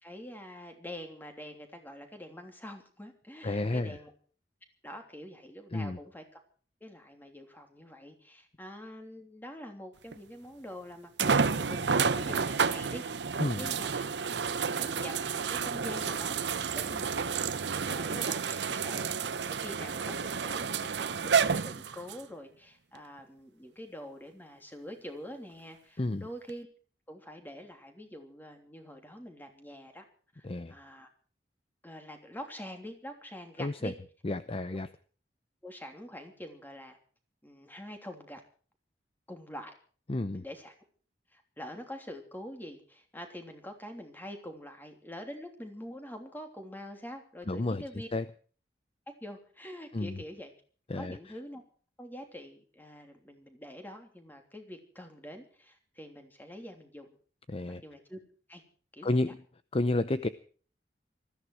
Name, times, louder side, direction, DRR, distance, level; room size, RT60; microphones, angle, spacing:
voice 1, 0.0-4.1 4.8-6.4 6.8-14.1 14.5-26.7 27.1-30.1 30.3-31.1 31.8-33.9 34.7-34.8 35.6-37.0 37.4-38.4 39.3-39.7 40.3-40.7 41.3-48.1 49.2-50.5 51.0-51.6 52.0-57.2 57.8-58.2 58.5-58.6 58.9-59.2, equal, 10° left, 5 dB, 3.1 m, -45 dB
voice 2, 3.4-4.0 5.7-6.0 13.4-13.7 26.0-26.3 30.4-30.7 33.6-33.9 34.2-34.9 40.1-40.4 47.5-47.8 48.1-48.2 49.9-50.2 50.9-51.2 57.5-57.8 59.0-59.4 59.7-60.3, left 2 dB, 35° left, 13 dB, 0.7 m, -31 dB
sound 1, 10.1-10.2 11.2-22.2 22.9-23.0 26.5-26.6, right 5 dB, 80° right, 0.8 m, -30 dB
20.0 x 14.5 x 4.7 m, 0.42 s
head